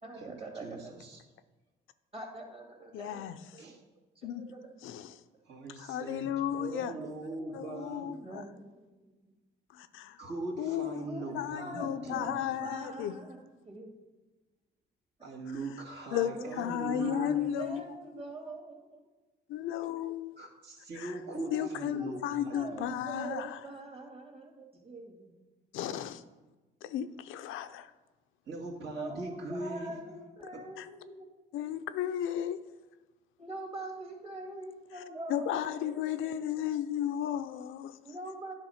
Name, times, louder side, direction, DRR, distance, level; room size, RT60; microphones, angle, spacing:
voice 1, 0.0-0.9 2.1-3.6 4.2-4.7 6.9-9.1 11.0-14.0 16.1-16.6 17.0-19.1 21.3-21.7 21.9-22.3 22.5-25.4 28.9-31.3 33.4-36.4 38.0-38.5, right 2 dB, 30° right, 2.0 m, -43 dB
voice 2, 0.6-1.2 3.6-3.8 5.5-8.1 10.2-12.4 15.2-17.5 20.4-22.9 28.5-30.0 30.5-30.6, right 2 dB, 60° right, 2.1 m, -41 dB
voice 3, 2.9-3.4 4.2-4.4 4.8-5.2 5.8-6.9 7.5-8.4 9.7-10.2 10.6-11.1 11.3-13.1 16.1-16.3 16.6-17.8 19.5-20.3 21.0-21.1 21.5-23.6 25.7-26.2 26.8-27.9 30.8-30.9 31.5-32.6 35.3-38.0, left 10 dB, 90° left, 0.5 m, -34 dB
9.7 x 3.9 x 5.7 m
cardioid pair, 90°, 20 cm